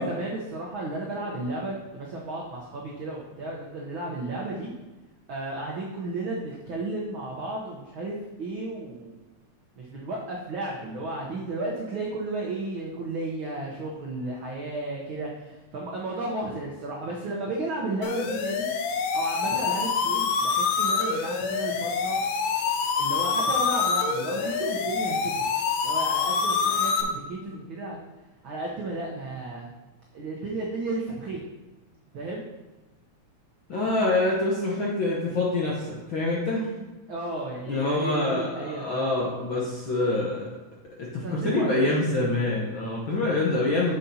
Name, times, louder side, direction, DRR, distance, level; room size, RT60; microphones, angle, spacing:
voice 1, 0.0-4.7 5.3-9.2 9.8-18.7 19.1-22.2 23.0-25.4 25.8-28.0 28.4-29.7 30.1-31.4 32.1-32.4 37.1-39.1 41.2-41.9, right 2 dB, 80° right, -3 dB, 1.1 m, -33 dB
sound 1, 18.0-27.0, left 5 dB, 90° left, 2.3 m, -26 dB
voice 2, 33.7-36.7 37.7-40.5 41.0-43.9, left 2 dB, 65° left, -4 dB, 1.3 m, -26 dB
9.4 x 7.2 x 2.8 m, 1.1 s
omnidirectional pair, 3.6 m